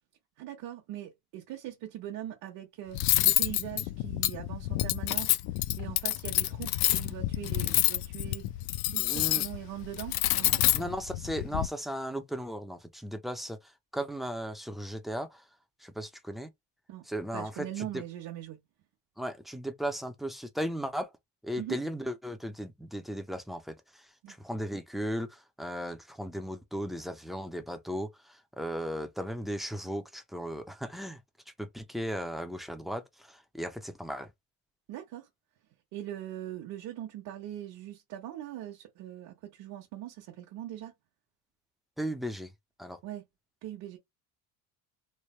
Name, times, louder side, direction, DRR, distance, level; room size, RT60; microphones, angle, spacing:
voice 1, 0.4-3.0 3.2-5.4 5.8-8.5 8.9-10.9 16.9-17.0 17.3-18.6 21.6-21.8 24.2-24.3 34.9-35.3 35.9-40.9 43.0-43.2 43.6-44.0, right 12 dB, 65° right, 1.0 m, -41 dB
Cutlery silverware, 2.9-11.7, left 16 dB, 75° left, 0.5 m, -28 dB
voice 2, 9.0-9.4 10.7-13.6 13.9-15.4 15.8-16.5 17.0-18.0 19.2-21.1 21.4-31.2 31.6-34.3 42.0-42.5 42.8-43.0, equal, ahead, 0.4 m, -36 dB
3.2 x 2.1 x 4.2 m
cardioid pair, 155°, 36 cm